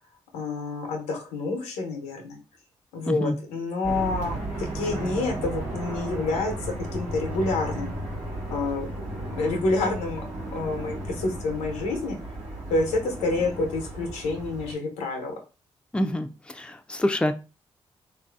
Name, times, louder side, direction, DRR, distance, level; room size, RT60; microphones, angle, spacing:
voice 1, 0.3-2.4 2.9-7.9 8.5-10.3 10.5-12.2 12.7-15.3, left 3 dB, 90° left, 2 dB, 0.7 m, -28 dB
sound 1, 3.8-14.7, right 1 dB, 75° right, 1.1 m, -34 dB
voice 2, 15.9-16.3 16.5-17.3, left 1 dB, 10° left, 7 dB, 0.4 m, -25 dB
3.1 x 2.6 x 2.4 m, 0.31 s
hypercardioid pair, 45°, 12 cm